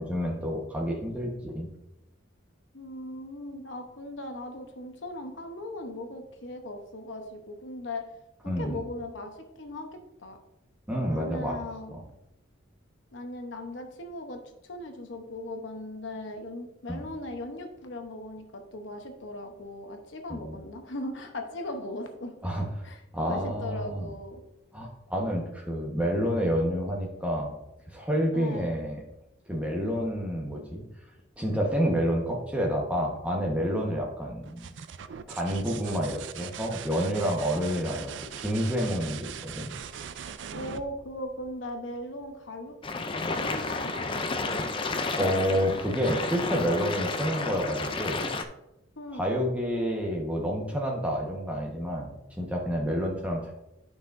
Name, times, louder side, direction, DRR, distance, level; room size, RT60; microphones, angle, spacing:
voice 1, 0.0-1.7 8.5-8.8 10.9-11.6 11.9-12.0 16.9-17.0 20.3-20.6 22.4-22.6 23.1-24.1 24.7-27.6 27.9-29.0 29.5-30.8 31.4-34.7 35.3-39.7 45.2-48.2 49.1-53.5, equal, 5° right, -1 dB, 1.1 m, -29 dB
voice 2, 2.7-8.0 8.6-9.9 10.2-10.4 11.1-12.0 13.1-22.3 22.8-23.0 23.3-24.4 28.3-28.6 40.5-42.8 43.2-44.3 49.0-49.3, left 1 dB, 65° left, 4 dB, 0.9 m, -38 dB
sound 1, 34.4-42.0 43.8-44.4, right 8 dB, 60° right, 0.4 m, -41 dB
sound 2, 42.8-48.4, left 3 dB, 25° left, 0.4 m, -31 dB
9.9 x 5.7 x 2.6 m, 0.86 s
head